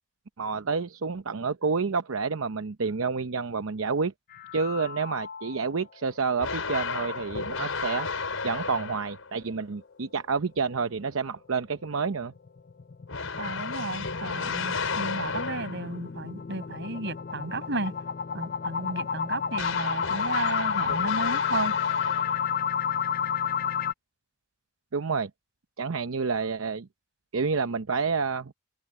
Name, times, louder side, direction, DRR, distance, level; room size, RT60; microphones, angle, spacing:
voice 1, 0.4-4.1 4.5-8.1 8.4-12.3 24.9-25.3 25.8-26.9 27.3-28.5, right 5 dB, 90° right, 0.7 m, -29 dB
sound 1, 4.3-5.8 6.2-6.3 6.7-6.8 7.2-7.3 12.1-23.9, left 7 dB, 45° left, 0.6 m, -31 dB
sound 2, 6.4-9.3 13.1-16.0 19.5-22.6, left 5 dB, 85° left, 4.9 m, -33 dB
voice 2, 13.4-18.0 18.3-21.8, right 2 dB, 60° right, 6.5 m, -33 dB
head